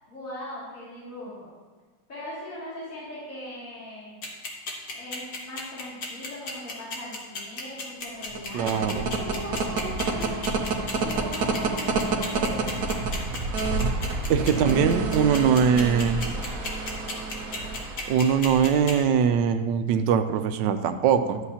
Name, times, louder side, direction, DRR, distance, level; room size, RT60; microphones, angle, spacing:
voice 1, 0.1-1.5 2.1-4.1 4.9-10.4 11.0-12.9 14.3-15.4, left 1 dB, 45° left, -9 dB, 3.0 m, -39 dB
sound 1, 4.2-18.9, left 3 dB, 65° left, 1.9 m, -34 dB
sound 2, 8.2-19.0, right 3 dB, 60° right, 1.2 m, -29 dB
voice 2, 8.5-9.1 14.3-16.2 18.1-21.4, right 7 dB, 85° right, 9 dB, 1.3 m, -22 dB
12.0 x 8.0 x 2.8 m, 1.4 s
omnidirectional pair, 1.9 m